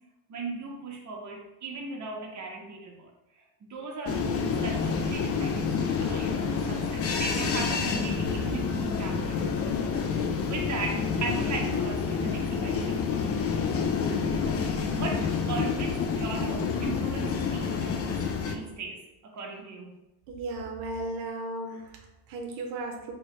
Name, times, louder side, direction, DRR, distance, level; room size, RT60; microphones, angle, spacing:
voice 1, 0.3-3.1 3.7-9.7 10.1-13.0 14.3-20.0, right 4 dB, 35° right, 0 dB, 0.9 m, -38 dB
sound 1, 4.0-18.6, left 5 dB, 30° left, 0.4 m, -28 dB
voice 2, 20.3-23.1, right 2 dB, 80° right, 1 dB, 0.7 m, -35 dB
3.1 x 2.9 x 3.1 m, 0.98 s
supercardioid pair, 85°, 49 cm